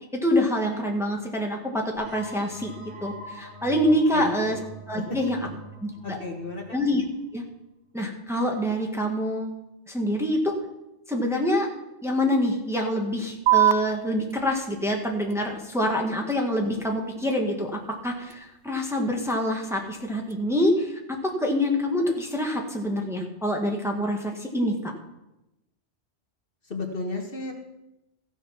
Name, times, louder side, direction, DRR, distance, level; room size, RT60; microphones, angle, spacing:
voice 1, 0.1-4.6 4.9-5.4 5.8-6.2 6.7-7.0 7.3-7.4 7.9-9.5 9.9-10.6 11.1-11.7 12.0-24.9, left 1 dB, ahead, 0 dB, 1.5 m, -26 dB
sound 1, 1.9-7.4, right 1 dB, 45° right, 5.5 m, -43 dB
voice 2, 4.1-4.6 5.0-5.2 6.0-6.8 26.6-27.5, left 3 dB, 50° left, 3 dB, 1.6 m, -33 dB
sound 2, 13.5-20.5, right 12 dB, 75° right, 0.9 m, -30 dB
14.5 x 7.2 x 5.8 m, 0.94 s
omnidirectional pair, 1.2 m